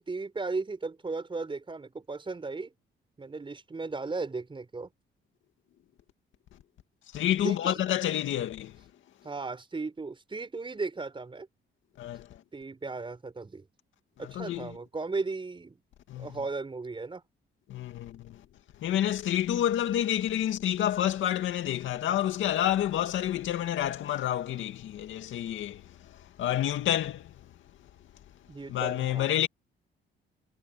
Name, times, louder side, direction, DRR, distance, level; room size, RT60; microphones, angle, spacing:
voice 1, 0.0-2.7 3.2-4.9 7.4-7.8 9.2-11.5 12.5-13.6 14.2-15.8 16.2-17.2 28.5-29.3, right 3 dB, 25° right, 5.9 m, -36 dB
voice 2, 7.1-8.8 12.0-12.4 14.2-14.7 16.1-16.3 17.7-18.4 18.8-27.4 28.7-29.5, left 11 dB, 80° left, 2.2 m, -29 dB
cardioid pair, 90°, 20 cm